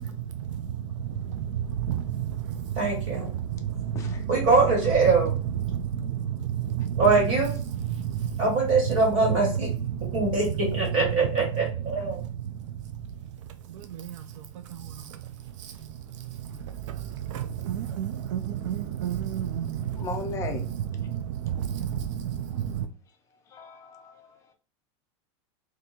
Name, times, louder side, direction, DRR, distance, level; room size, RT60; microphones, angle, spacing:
voice 1, 1.3-2.3 3.5-4.2 5.7-7.0 8.0-8.3 10.0-10.2 13.9-14.2 14.7-14.8 16.9-17.0 17.3-20.0 20.5-20.6 21.0-22.9, right 10 dB, 70° right, 0.4 m, -30 dB
voice 2, 2.7-3.3 4.3-5.3 7.0-7.5 8.4-9.7 10.1-10.4 10.7-12.2, right 3 dB, 35° right, 1.7 m, -23 dB
voice 3, 19.9-20.7 23.5-24.1, left 4 dB, 20° left, 0.5 m, -36 dB
2.7 x 2.5 x 4.1 m
supercardioid pair, 165°, 16 cm